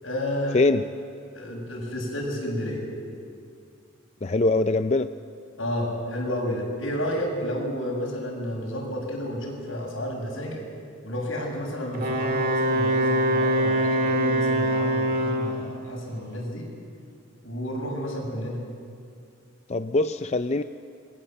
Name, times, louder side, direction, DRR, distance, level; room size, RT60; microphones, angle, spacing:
voice 1, 0.0-0.6 1.3-2.8 5.6-10.6 11.0-16.7 17.4-18.7, equal, 85° left, 0 dB, 7.2 m, -31 dB
voice 2, 4.2-5.1 19.7-20.6, left 2 dB, 35° left, 9 dB, 0.5 m, -22 dB
Wind instrument woodwind instrument, 11.9-15.7, right 1 dB, 45° right, 2.4 m, -24 dB
27.0 x 22.5 x 7.8 m, 2.3 s
head